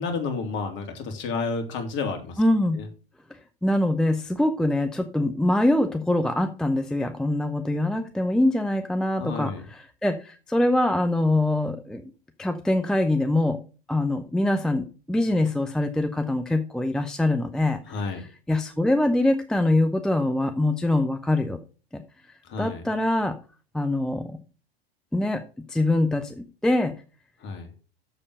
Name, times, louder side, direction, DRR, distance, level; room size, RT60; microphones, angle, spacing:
voice 1, 0.0-2.4 2.7-2.9 9.2-9.7 17.9-18.2 22.4-22.8 27.4-27.7, left 4 dB, 35° left, 6 dB, 2.6 m, -31 dB
voice 2, 2.4-2.8 3.6-12.0 12.4-13.6 13.9-17.9 18.5-21.6 21.9-22.0 22.6-23.4 23.7-24.4 25.1-25.4 25.7-26.9, left 1 dB, ahead, 7 dB, 0.5 m, -24 dB
6.9 x 6.9 x 6.5 m, 0.35 s
figure-of-eight pair, 100°, 32 cm